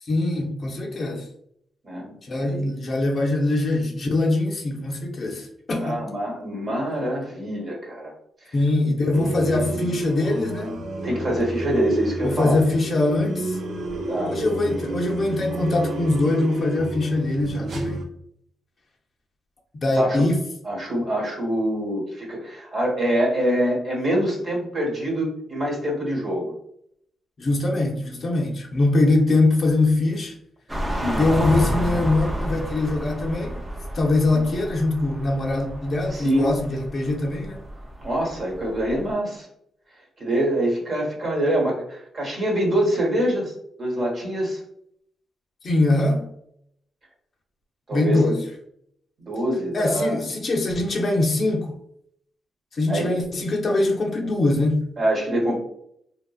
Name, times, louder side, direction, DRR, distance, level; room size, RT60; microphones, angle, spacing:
voice 1, 0.0-1.3 2.2-6.0 8.5-10.8 12.2-13.6 14.3-18.0 19.8-20.4 27.4-30.3 31.2-33.6 33.9-37.6 45.6-46.3 47.9-48.5 49.7-51.7 52.7-54.8, left 2 dB, 45° left, 0 dB, 0.5 m, -22 dB
voice 2, 5.8-8.1 11.0-12.6 14.1-14.3 20.0-20.2 20.6-26.5 31.0-31.2 36.1-36.5 38.0-39.5 40.2-43.5 43.8-44.6 47.9-48.2 49.2-50.2 52.9-53.1 55.0-55.6, right 1 dB, 50° right, -2 dB, 1.1 m, -25 dB
sound 1, 9.1-18.0, right 2 dB, 70° right, 0.5 m, -30 dB
sound 2, 30.7-39.1, equal, 15° right, 0.6 m, -30 dB
2.8 x 2.4 x 2.3 m, 0.72 s
cardioid pair, 75°, 0 cm